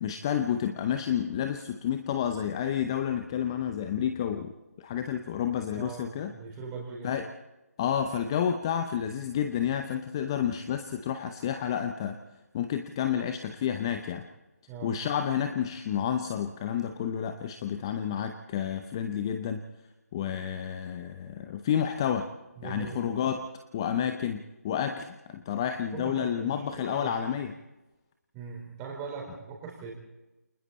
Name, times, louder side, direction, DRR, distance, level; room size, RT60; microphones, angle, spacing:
voice 1, 0.0-4.5 4.8-6.3 7.0-7.3 7.8-12.2 12.5-14.2 14.8-19.6 20.1-22.3 22.6-23.4 23.7-27.5, left 9 dB, 15° left, 7 dB, 0.8 m, -30 dB
voice 2, 5.8-7.1 14.7-15.0 22.6-23.0 25.9-27.1 28.3-29.9, right 5 dB, 15° right, -1 dB, 4.6 m, -40 dB
29.0 x 22.0 x 4.3 m, 1.0 s
figure-of-eight pair, 160°, 9 cm